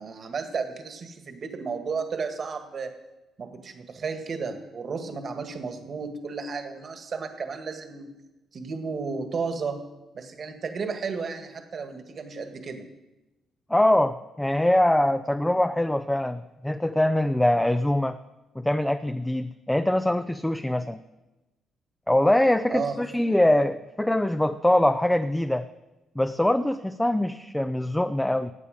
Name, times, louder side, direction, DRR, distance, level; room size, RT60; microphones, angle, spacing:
voice 1, 0.0-2.9 3.4-8.1 8.5-9.8 10.1-12.8 22.7-23.0, right 5 dB, 50° right, 6 dB, 1.7 m, -33 dB
voice 2, 13.7-18.2 18.6-21.0 22.1-25.7 26.2-28.5, left 1 dB, 10° left, 9 dB, 0.5 m, -23 dB
16.5 x 8.7 x 5.2 m, 1.0 s
cardioid pair, 90°, 0 cm